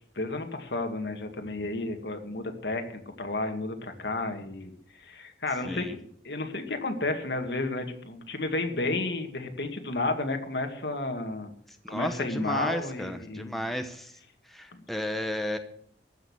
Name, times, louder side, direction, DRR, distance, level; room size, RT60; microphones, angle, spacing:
voice 1, 0.2-4.7 5.0-11.5 11.9-13.6 14.7-14.8, left 2 dB, 70° left, 5 dB, 2.2 m, -32 dB
voice 2, 5.6-6.0 11.8-14.2 14.5-15.6, equal, ahead, 6 dB, 0.9 m, -33 dB
14.5 x 6.6 x 9.5 m, 0.65 s
head